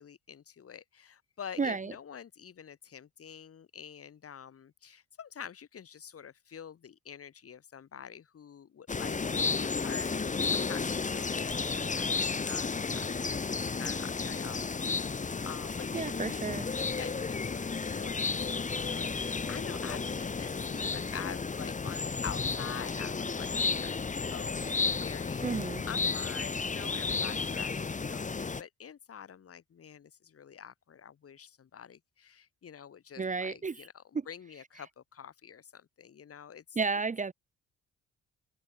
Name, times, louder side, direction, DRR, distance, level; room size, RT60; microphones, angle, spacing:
voice 1, 0.0-14.9 15.1-16.6 16.9-25.4 25.9-36.8, left 8 dB, 50° left, 3.0 m, -46 dB
voice 2, 1.6-1.9 15.9-16.7 25.4-25.8 33.2-33.9 34.1-34.3 36.8-37.3, right 4 dB, 25° right, 0.9 m, -32 dB
sound 1, 8.9-28.6, left 4 dB, 25° left, 1.4 m, -33 dB
cardioid pair, 90°, 30 cm